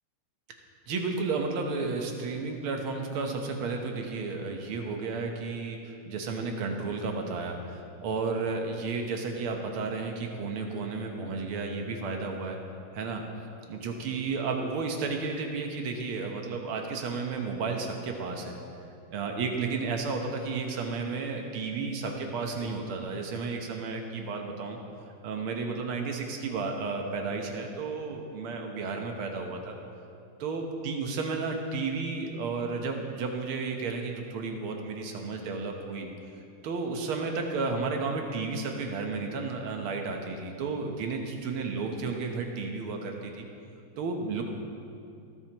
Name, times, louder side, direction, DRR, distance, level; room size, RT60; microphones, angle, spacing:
voice 1, 0.9-12.6 12.9-13.2 13.7-18.6 19.1-24.8 25.2-29.8 30.4-36.1 36.6-43.5 44.0-44.4, right 4 dB, 90° right, 3 dB, 1.9 m, -32 dB
27.0 x 9.0 x 3.0 m, 2.6 s
omnidirectional pair, 2.3 m